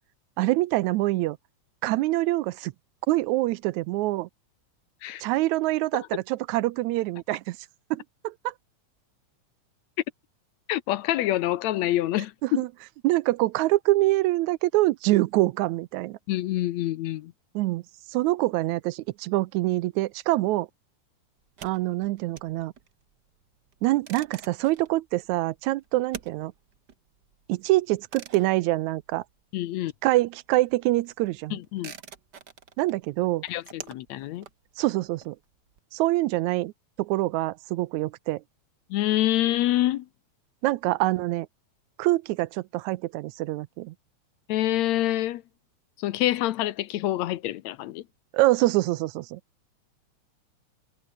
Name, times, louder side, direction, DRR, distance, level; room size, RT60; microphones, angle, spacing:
voice 1, 0.4-1.4 1.8-2.7 3.1-4.3 5.2-7.6 7.9-8.5 12.4-12.7 13.0-16.2 17.6-17.8 18.1-20.7 21.6-22.7 23.8-26.5 27.5-29.2 30.0-31.6 32.8-33.4 34.8-35.4 35.9-36.7 37.0-38.4 40.6-41.5 42.0-43.9 48.3-49.4, right 18 dB, 80° right, 2.0 m, -25 dB
voice 2, 10.7-12.6 16.3-17.3 29.5-29.9 31.5-31.9 33.4-34.5 38.9-40.1 44.5-45.4 46.0-48.0, left 14 dB, 75° left, 2.0 m, -26 dB
sound 1, 21.4-29.7 30.0-35.8, right 7 dB, 40° right, 1.8 m, -47 dB
omnidirectional pair, 3.3 m